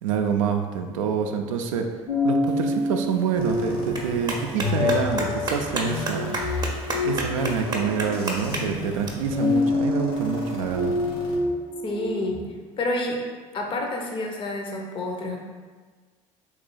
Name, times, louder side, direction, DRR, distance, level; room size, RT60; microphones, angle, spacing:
voice 1, 0.0-1.9 2.2-6.4 7.0-10.9, right 7 dB, 75° right, 5 dB, 0.4 m, -27 dB
sound 1, 2.1-12.3, left 3 dB, 85° left, 1.2 m, -27 dB
Clapping, 2.5-9.1, right 2 dB, 25° right, 0.7 m, -33 dB
sound 2, 3.4-11.4, equal, 60° left, 0.8 m, -39 dB
voice 2, 11.8-13.2 13.5-15.4, left 1 dB, 30° left, 1 dB, 0.6 m, -29 dB
3.1 x 3.1 x 3.7 m, 1.5 s
figure-of-eight pair, 60°, 17 cm